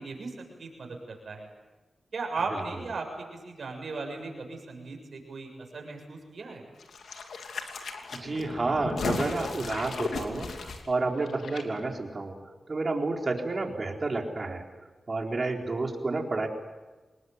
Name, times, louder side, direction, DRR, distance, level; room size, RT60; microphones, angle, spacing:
voice 1, 0.0-1.5 2.1-3.1 3.3-6.6, right 3 dB, 65° right, 2 dB, 7.1 m, -37 dB
sound 1, 6.8-11.6 11.9-12.0, left 4 dB, 90° left, 2.9 m, -36 dB
voice 2, 8.1-12.4 12.7-14.6 15.1-16.5, right 3 dB, 45° right, 3 dB, 4.1 m, -30 dB
26.0 x 20.5 x 9.5 m, 1.2 s
cardioid pair, 65°, 0 cm